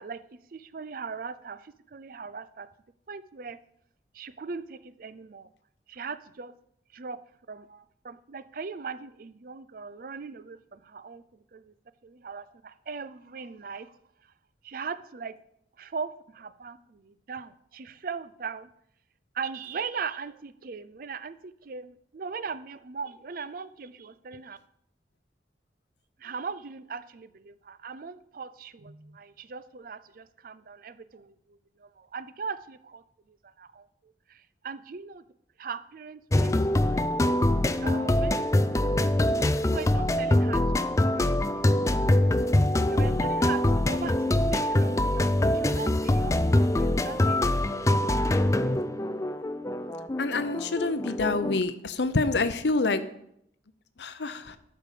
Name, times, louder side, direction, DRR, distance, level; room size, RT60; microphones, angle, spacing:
voice 1, 0.0-2.7 3.1-3.6 4.1-5.5 5.9-6.5 6.9-7.2 7.5-11.7 12.0-14.3 14.6-15.3 15.8-18.7 19.3-24.6 26.2-35.2 35.6-37.1 37.6-38.4 38.7-38.9 39.4-41.7 42.9-48.8, right 5 dB, 50° right, 15 dB, 0.5 m, -40 dB
sound 1, 36.3-51.6, left 1 dB, 15° left, 0.4 m, -24 dB
voice 2, 50.2-53.0 54.0-54.6, left 3 dB, 75° left, 12 dB, 0.7 m, -27 dB
12.0 x 6.8 x 5.0 m, 0.73 s
head